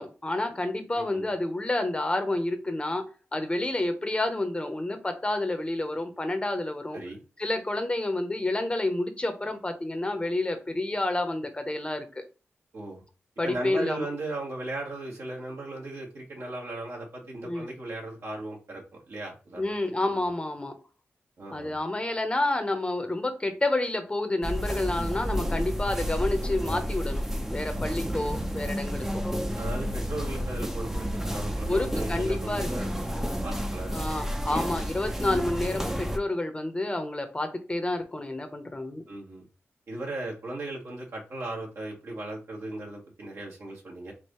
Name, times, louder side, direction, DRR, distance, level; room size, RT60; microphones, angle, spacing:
voice 1, 0.0-7.0 7.4-12.3 13.4-14.1 17.4-17.7 19.5-20.7 21.5-29.2 31.7-32.7 33.9-39.0, left 2 dB, 25° left, 7 dB, 0.8 m, -29 dB
voice 2, 0.9-1.3 6.9-7.2 12.7-13.0 13.4-19.7 20.1-20.2 21.4-21.8 29.6-34.2 34.4-34.7 39.1-39.4 39.9-44.1, right 2 dB, 75° right, -3 dB, 1.7 m, -37 dB
sound 1, 24.4-36.2, equal, 10° right, 0.6 m, -31 dB
4.6 x 2.7 x 3.1 m, 0.33 s
wide cardioid pair, 75°, 5 cm